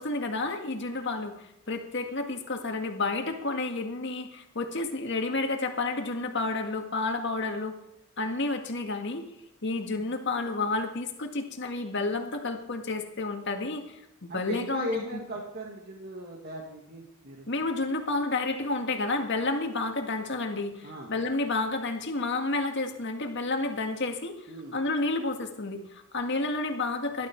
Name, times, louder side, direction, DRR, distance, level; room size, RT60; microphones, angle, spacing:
voice 1, 0.0-7.7 8.2-9.3 9.6-15.0 17.5-24.5 24.7-27.3, left 3 dB, 60° left, 4 dB, 1.9 m, -30 dB
voice 2, 14.3-17.5 20.8-21.1 24.5-24.8, left 1 dB, 50° right, -1 dB, 2.0 m, -37 dB
16.5 x 12.0 x 4.6 m, 0.80 s
head